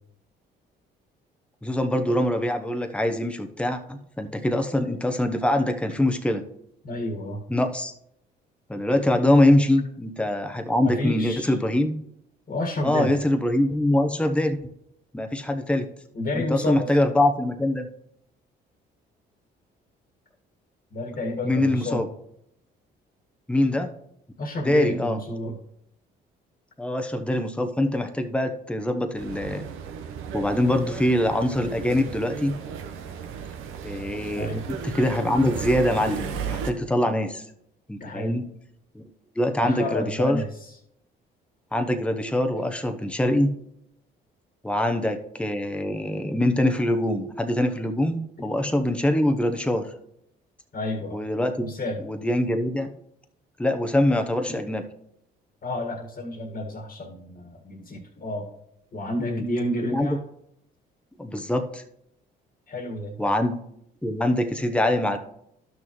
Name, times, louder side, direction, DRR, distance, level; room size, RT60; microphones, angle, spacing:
voice 1, 1.6-6.4 7.5-7.9 8.7-11.9 12.8-14.6 15.1-15.9 16.3-17.9 21.4-22.1 23.5-23.9 24.6-25.2 26.8-29.6 30.3-32.6 33.8-37.3 37.9-38.4 38.9-39.0 39.4-40.4 41.7-43.5 44.6-49.9 51.1-51.7 52.0-52.9 53.6-54.8 59.2-59.4 59.8-60.2 61.2-61.8 63.2-63.6 64.0-65.2, left 1 dB, 5° left, 6 dB, 0.9 m, -23 dB
voice 2, 6.8-7.4 10.8-11.5 12.5-13.1 16.1-16.9 20.9-22.0 24.4-25.5 34.3-34.6 38.0-38.4 39.6-40.4 50.7-51.2 51.6-52.0 55.6-58.4 58.9-60.2 62.7-63.1, left 1 dB, 45° left, 1 dB, 1.7 m, -30 dB
sound 1, 29.2-36.7, right 7 dB, 75° right, 0.9 m, -35 dB
12.0 x 6.2 x 3.1 m, 0.75 s
supercardioid pair, 65°, 21 cm